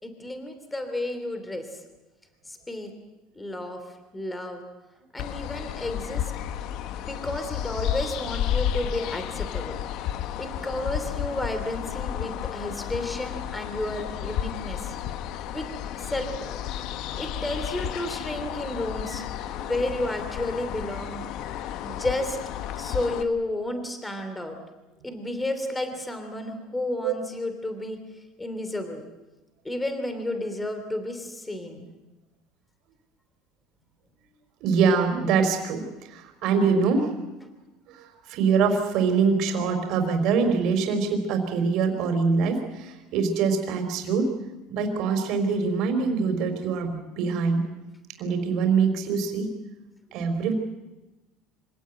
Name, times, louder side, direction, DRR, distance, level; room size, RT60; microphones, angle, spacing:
voice 1, 0.0-1.8 2.4-2.9 3.3-4.6 5.1-6.3 7.0-9.8 10.4-14.9 15.5-15.6 16.0-16.6 17.2-19.3 19.6-21.2 21.8-22.4 22.8-24.6 25.0-28.0 28.4-29.0 29.6-31.9, left 1 dB, 10° left, 7 dB, 3.1 m, -32 dB
sound 1, 5.2-23.2, left 10 dB, 55° left, 1.2 m, -32 dB
voice 2, 34.6-37.1 37.9-44.3 44.7-47.7 48.2-49.5 50.1-50.5, right 5 dB, 55° right, 5 dB, 4.3 m, -24 dB
25.0 x 17.5 x 9.3 m, 1.1 s
cardioid pair, 140°, 0 cm